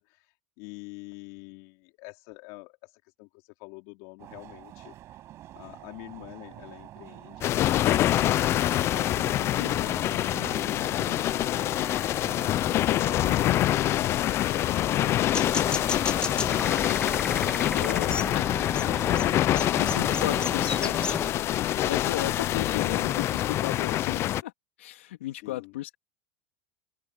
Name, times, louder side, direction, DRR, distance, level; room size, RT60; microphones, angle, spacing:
voice 1, 0.0-16.6 25.3-25.8, left 27 dB, 60° left, 4.7 m, -48 dB
sound 1, 4.2-20.5, right 14 dB, 45° right, 6.0 m, -45 dB
sound 2, 7.4-24.4, left 13 dB, 40° left, 0.7 m, -25 dB
voice 2, 9.6-10.1 13.3-13.6 17.7-18.4 19.5-21.2 21.5-24.5 24.8-26.0, left 15 dB, 85° left, 2.5 m, -35 dB
sound 3, 15.3-21.3, left 3 dB, 15° left, 2.5 m, -33 dB
open air
supercardioid pair, 110°, 7 cm